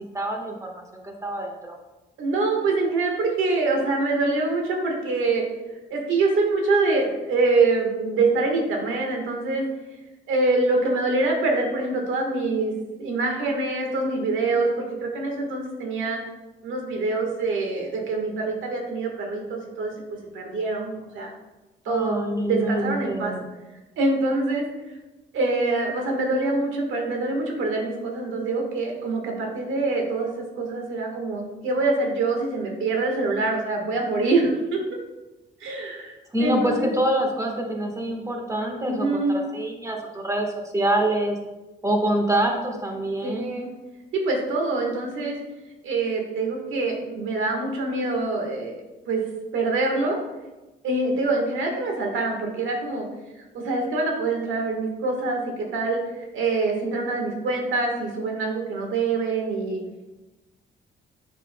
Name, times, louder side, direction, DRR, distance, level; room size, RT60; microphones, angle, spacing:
voice 1, 0.1-1.7 21.9-23.4 36.3-41.4 41.8-43.5, right 1 dB, 15° right, 1 dB, 1.4 m, -26 dB
voice 2, 2.2-5.4 5.9-9.6 10.3-12.7 13.0-16.2 16.6-21.3 21.8-23.3 24.0-24.6 25.3-34.8 35.6-36.9 38.8-39.4 43.2-43.7 44.1-45.4 45.8-48.7 49.1-49.2 49.5-50.2 50.8-53.1 53.5-59.8, right 3 dB, 80° right, 1 dB, 1.5 m, -25 dB
7.4 x 6.1 x 2.2 m, 1.1 s
cardioid pair, 90°, 20 cm